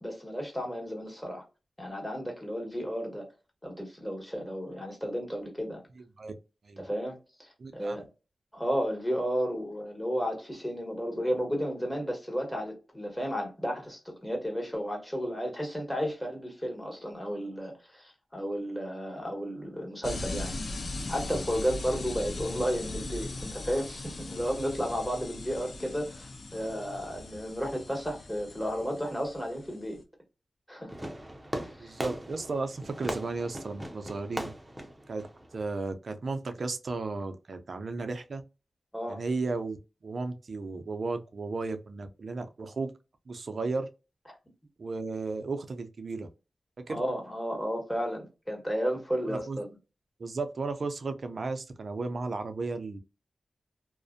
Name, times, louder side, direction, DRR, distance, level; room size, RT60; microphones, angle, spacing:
voice 1, 0.0-1.4 1.8-3.3 3.6-5.8 6.8-8.1 8.5-30.0 30.7-30.9 31.6-31.9 38.9-39.2 46.9-49.7, equal, 10° left, 1.2 m, -33 dB
voice 2, 6.0-6.4 6.6-6.9 7.6-8.0 31.8-34.5 35.1-35.3 35.5-38.4 39.1-39.8 40.0-42.9 43.3-43.9 44.8-46.3 46.8-47.0 49.3-49.6 50.2-53.0, right 3 dB, 65° right, 0.4 m, -34 dB
sound 1, 20.0-30.0, left 2 dB, 65° left, 0.4 m, -39 dB
Fireworks, 30.9-35.9, right 1 dB, 15° right, 0.6 m, -39 dB
2.4 x 2.1 x 2.5 m
cardioid pair, 45°, 0 cm